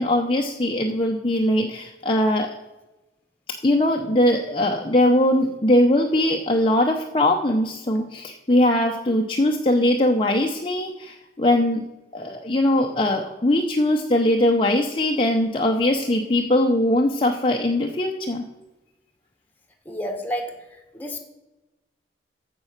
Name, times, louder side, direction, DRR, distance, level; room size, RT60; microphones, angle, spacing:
voice 1, 0.0-2.5 3.6-11.8 12.1-18.4, left 1 dB, 30° left, 1 dB, 0.8 m, -21 dB
voice 2, 19.9-20.5 20.9-21.2, equal, 10° left, 4 dB, 1.3 m, -29 dB
14.5 x 5.4 x 6.5 m, 1.0 s
head